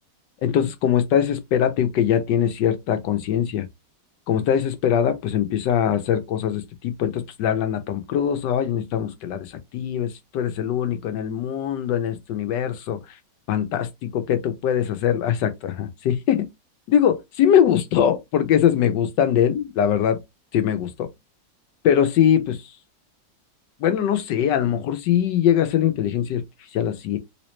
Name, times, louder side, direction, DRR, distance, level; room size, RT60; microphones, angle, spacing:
voice 1, 0.4-3.7 4.3-13.0 13.5-13.9 14.1-16.5 16.9-20.2 20.5-21.1 21.8-22.6 23.8-26.4 26.7-27.2, left 9 dB, 75° left, 1.4 m, -22 dB
3.5 x 3.1 x 3.1 m
omnidirectional pair, 1.9 m